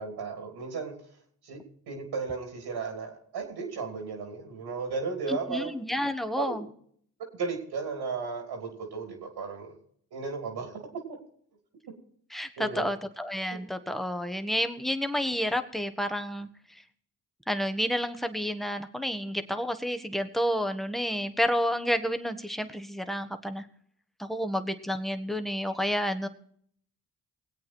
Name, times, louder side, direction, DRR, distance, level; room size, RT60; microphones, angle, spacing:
voice 1, 0.0-1.6 1.9-5.7 6.4-6.6 7.4-9.7 10.1-11.2 12.6-12.9, right 5 dB, 85° right, 2 dB, 3.0 m, -35 dB
voice 2, 5.3-6.6 12.3-16.5 17.5-23.6 24.2-26.3, equal, ahead, 8 dB, 1.3 m, -30 dB
20.0 x 8.5 x 4.4 m, 0.63 s
supercardioid pair, 50°, 38 cm